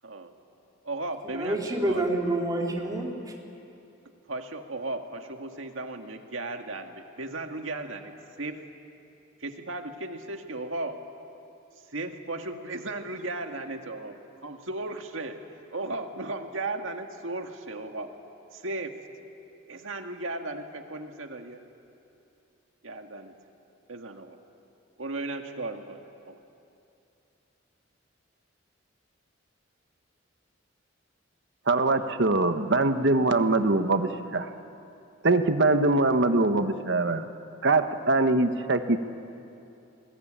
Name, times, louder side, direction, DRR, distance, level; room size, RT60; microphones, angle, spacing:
voice 1, 0.0-0.3 0.8-1.6 1.9-2.0 4.3-8.6 9.4-11.0 11.9-14.1 14.4-15.4 15.7-18.1 18.5-19.0 19.7-21.6 22.8-23.3 23.9-24.4 25.0-26.4, right 2 dB, 75° right, 5 dB, 1.9 m, -36 dB
voice 2, 1.2-3.4, right 1 dB, 20° right, -1 dB, 3.5 m, -28 dB
voice 3, 31.7-34.5 35.2-37.3 37.6-39.0, right 2 dB, 60° right, 8 dB, 1.3 m, -23 dB
27.0 x 21.0 x 8.9 m, 2.7 s
head